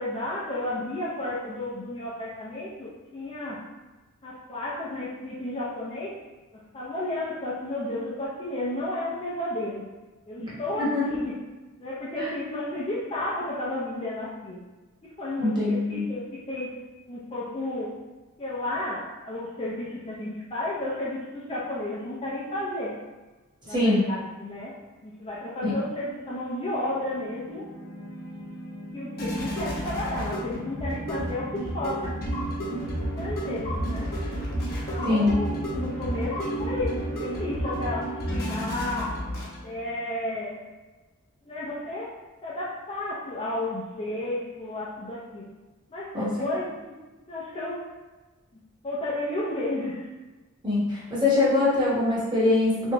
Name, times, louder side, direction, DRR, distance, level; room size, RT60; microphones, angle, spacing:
voice 1, 0.0-3.6 4.2-6.2 6.5-9.9 10.3-11.4 11.8-14.6 15.0-16.7 17.1-17.9 18.4-22.9 23.7-24.7 25.0-27.6 28.9-32.1 32.8-34.1 34.6-39.1 39.6-40.5 41.4-42.1 42.4-45.5 45.9-47.0 47.3-47.8 48.8-50.0, left 1 dB, 25° left, -6 dB, 0.6 m, -32 dB
voice 2, 15.4-16.0 23.7-24.0 25.6-25.7 35.0-35.3 46.1-46.5 50.6-52.9, left 2 dB, 20° right, -8 dB, 1.1 m, -23 dB
sound 1, 27.1-39.9, right 1 dB, 45° left, 1.0 m, -31 dB
3.2 x 2.7 x 2.9 m, 1.2 s
head